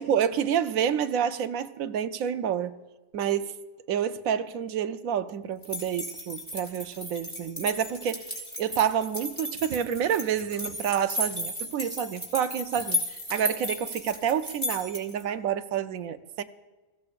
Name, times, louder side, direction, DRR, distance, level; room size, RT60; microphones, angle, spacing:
voice 1, 0.0-2.7 3.1-3.5 3.9-16.4, right 8 dB, 85° right, 1.1 m, -28 dB
sound 1, 5.6-15.2, left 1 dB, 15° left, 4.0 m, -34 dB
22.5 x 15.5 x 2.5 m
omnidirectional pair, 1.4 m